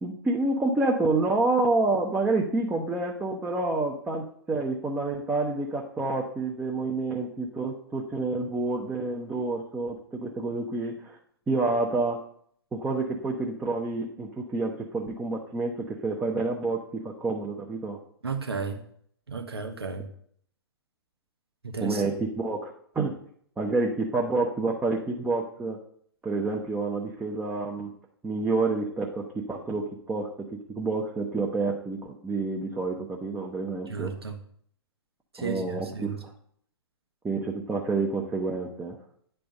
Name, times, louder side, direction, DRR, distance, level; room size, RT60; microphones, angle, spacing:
voice 1, 0.0-11.2 11.5-12.2 12.7-18.0 21.8-23.1 23.6-25.8 26.2-27.9 28.2-30.3 30.7-34.1 35.4-36.3 37.2-39.0, right 3 dB, 10° right, -1 dB, 0.8 m, -28 dB
voice 2, 18.2-18.8 19.3-20.1 21.6-22.0 33.9-34.4 35.3-36.2, right 5 dB, 85° right, 5 dB, 1.1 m, -33 dB
9.3 x 3.4 x 5.3 m, 0.63 s
figure-of-eight pair, 115°, 13 cm